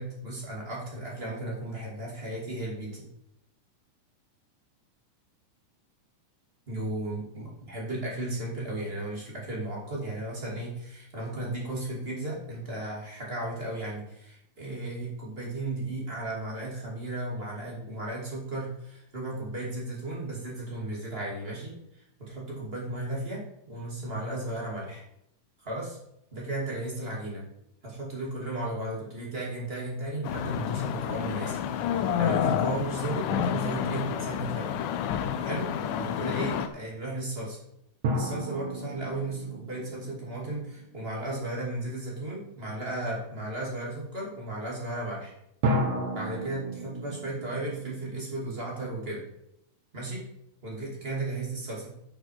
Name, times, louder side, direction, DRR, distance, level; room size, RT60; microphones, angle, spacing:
voice 1, 0.0-3.1 6.7-25.0 25.6-26.0 26.3-27.4 27.8-31.6 31.9-34.7 35.4-37.6 38.1-45.4 46.1-49.2 49.9-50.2 50.6-51.9, right 2 dB, 20° right, -3 dB, 2.4 m, -35 dB
sound 1, 30.2-36.7, left 9 dB, 85° left, 2.2 m, -29 dB
sound 2, 38.0-41.4 45.6-49.0, right 1 dB, 80° right, 3.3 m, -33 dB
11.5 x 6.5 x 4.8 m, 0.79 s
omnidirectional pair, 3.7 m